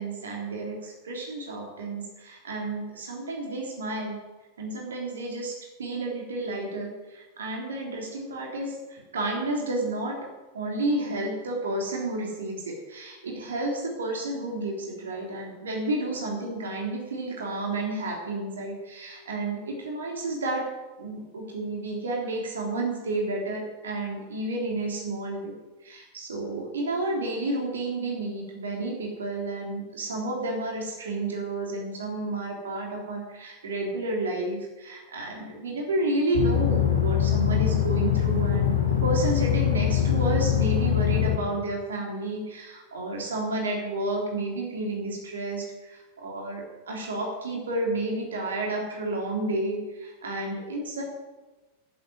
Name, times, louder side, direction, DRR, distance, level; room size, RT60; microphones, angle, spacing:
voice 1, 0.0-4.2 4.6-10.2 10.5-20.7 21.0-25.6 25.8-51.0, right 2 dB, 65° right, 0 dB, 3.4 m, -31 dB
sound 1, 36.3-41.3, left 10 dB, 80° left, 3.1 m, -23 dB
11.0 x 8.1 x 9.4 m, 1.1 s
figure-of-eight pair, 90°, 0 cm